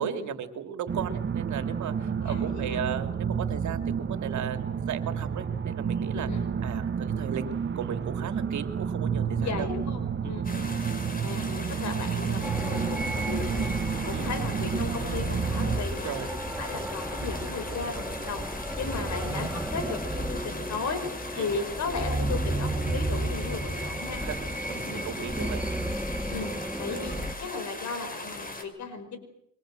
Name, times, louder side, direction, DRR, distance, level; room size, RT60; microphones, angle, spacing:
voice 1, 0.0-6.3 6.6-7.4 7.7-9.7 10.2-10.4 14.1-14.3 15.9-16.3 18.8-19.1 21.3-21.5 24.2-25.6, right 8 dB, 70° right, 8 dB, 2.9 m, -36 dB
sound 1, 0.9-15.8, right 7 dB, 40° right, 1.7 m, -30 dB
voice 2, 2.2-2.9 6.1-6.5 9.4-10.7 11.2-13.7 14.0-16.3 16.6-18.4 18.8-21.0 21.4-24.2 24.7-25.1 26.3-26.5 26.8-29.2, left 4 dB, 65° left, 9 dB, 5.4 m, -36 dB
sound 2, 10.4-28.6, left 2 dB, 30° left, 5.9 m, -39 dB
sound 3, 12.4-27.3, right 1 dB, 5° right, 1.8 m, -33 dB
24.5 x 24.5 x 7.8 m, 0.72 s
cardioid pair, 90°, 30 cm